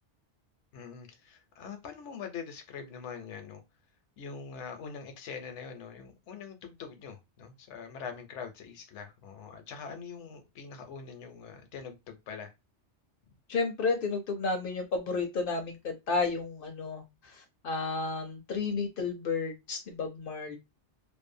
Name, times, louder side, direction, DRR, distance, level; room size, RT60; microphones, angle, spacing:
voice 1, 0.7-3.6 4.2-12.5, left 6 dB, 80° left, 1.0 m, -43 dB
voice 2, 13.5-20.6, left 4 dB, 60° left, 0.6 m, -32 dB
2.6 x 2.0 x 2.5 m
omnidirectional pair, 1.2 m